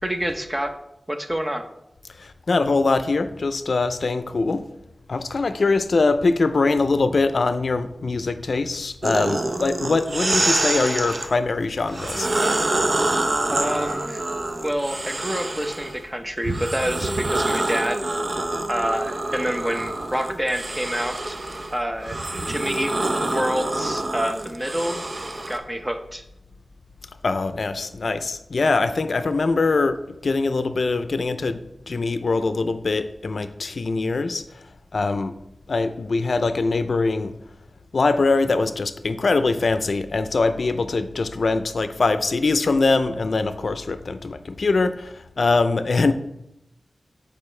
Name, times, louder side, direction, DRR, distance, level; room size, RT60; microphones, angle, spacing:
voice 1, 0.0-0.7 1.1-1.6 13.5-14.2 14.6-18.0 18.7-21.4 21.7-22.2 22.4-22.9 23.3-25.0 25.5-26.2, equal, 15° right, 6 dB, 0.7 m, -27 dB
voice 2, 2.2-4.6 5.1-12.3 27.2-31.6 31.9-34.4 34.9-35.4 35.7-37.3 37.9-46.1, left 3 dB, 75° left, 11 dB, 0.4 m, -22 dB
sound 1, 9.0-11.3 11.9-16.0 16.4-25.6, right 2 dB, 55° right, 0.6 m, -26 dB
8.8 x 4.9 x 3.2 m, 0.84 s
wide cardioid pair, 75°, 0 cm